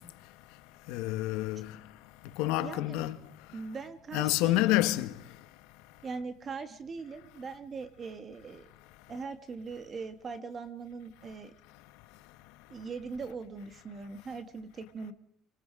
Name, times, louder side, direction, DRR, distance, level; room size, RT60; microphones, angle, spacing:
voice 1, 0.0-3.7 4.1-6.2 7.3-7.6 8.8-9.3 11.2-11.3 11.7-12.8 14.3-14.4, left 16 dB, 85° left, 1.4 m, -32 dB
voice 2, 2.6-3.1 3.5-4.8 6.0-8.7 9.1-11.5 12.7-15.1, right 4 dB, 30° right, 2.1 m, -41 dB
25.0 x 25.0 x 5.0 m
cardioid pair, 150°, 0 cm